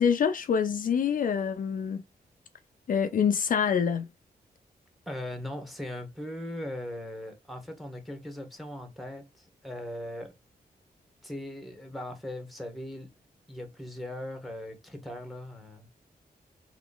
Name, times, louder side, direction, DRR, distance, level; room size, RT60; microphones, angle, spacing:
voice 1, 0.0-2.0 2.9-4.1, left 7 dB, 55° left, 0.4 m, -26 dB
voice 2, 5.1-10.3 11.2-13.1 13.5-15.9, left 1 dB, ahead, 1.1 m, -39 dB
3.1 x 2.9 x 3.9 m
wide cardioid pair, 145°, 16 cm